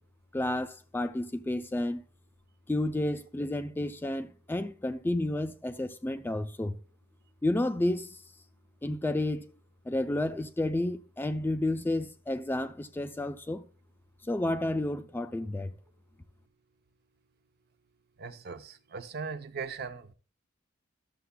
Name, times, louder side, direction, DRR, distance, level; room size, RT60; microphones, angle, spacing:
voice 1, 0.3-2.0 2.7-6.8 7.4-8.2 8.8-9.5 9.9-13.6 14.3-15.7, left 1 dB, 10° left, 0.3 m, -31 dB
voice 2, 18.2-20.1, right 5 dB, 55° right, 0.6 m, -39 dB
13.0 x 6.8 x 2.2 m
head